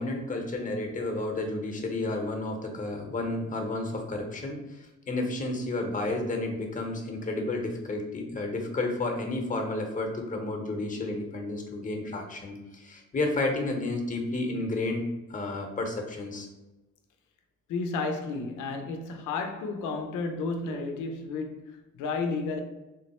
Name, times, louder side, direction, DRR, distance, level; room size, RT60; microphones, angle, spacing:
voice 1, 0.0-16.5 20.7-20.9, left 2 dB, 25° left, 0.9 m, -31 dB
voice 2, 17.7-22.6, left 3 dB, 90° left, 0.6 m, -32 dB
3.8 x 2.0 x 4.1 m
cardioid pair, 90°, 30 cm